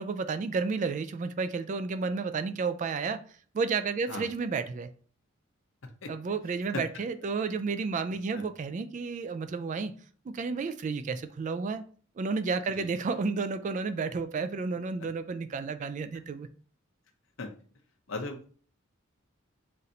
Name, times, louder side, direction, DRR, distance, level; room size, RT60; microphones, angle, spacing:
voice 1, 0.0-3.2 3.5-4.9 6.1-9.9 10.3-11.8 12.2-16.5, right 4 dB, 40° right, 0.3 m, -31 dB
voice 2, 18.1-18.5, left 2 dB, 70° left, 0.8 m, -36 dB
4.1 x 2.6 x 4.2 m
head